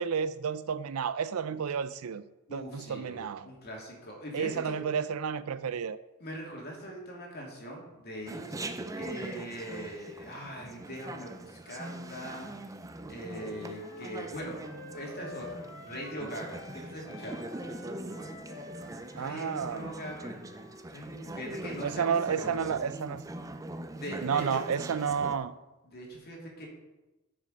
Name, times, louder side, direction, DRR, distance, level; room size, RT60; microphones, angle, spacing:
voice 1, 0.0-2.2 2.5-3.5 4.3-6.0 19.2-19.9 21.8-23.2 24.2-25.5, right 7 dB, 80° right, 0.5 m, -31 dB
voice 2, 2.5-4.7 6.2-8.6 9.0-12.7 13.1-14.6 14.9-17.4 19.2-20.5 20.9-22.8 23.9-24.8 25.8-26.7, equal, 45° left, 2.6 m, -41 dB
Chatter, 8.3-25.4, right 1 dB, 15° right, 0.4 m, -42 dB
Wind instrument woodwind instrument, 13.3-16.8 17.0-20.9, left 3 dB, 85° left, 2.4 m, -49 dB
9.8 x 6.3 x 5.2 m
head